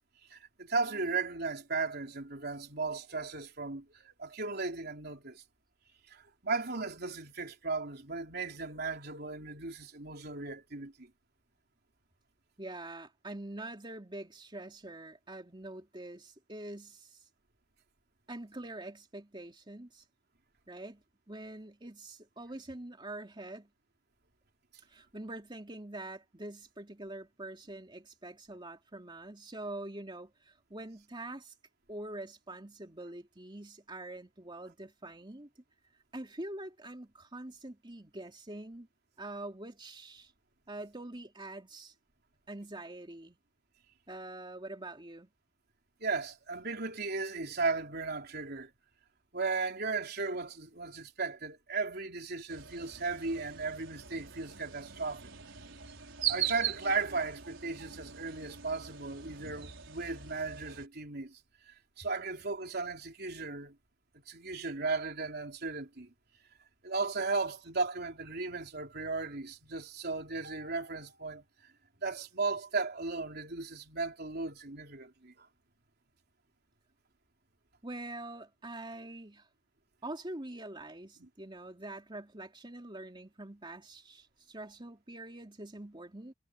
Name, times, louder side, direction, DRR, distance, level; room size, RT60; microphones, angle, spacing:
voice 1, 0.3-5.4 6.1-11.1 46.0-48.7 49.3-55.2 56.3-61.4 61.7-63.8 64.3-66.1 66.8-71.4 72.0-75.5 81.2-81.3, right 4 dB, 55° right, 3.6 m, -36 dB
voice 2, 12.6-17.2 18.3-20.0 20.7-23.7 24.8-31.5 31.9-35.5 36.1-38.9 39.2-40.3 40.7-41.9 42.5-43.4 44.1-45.3 77.8-79.5 80.0-86.3, right 1 dB, 25° right, 3.0 m, -45 dB
sound 1, 52.5-60.9, right 10 dB, 80° right, 4.7 m, -40 dB
head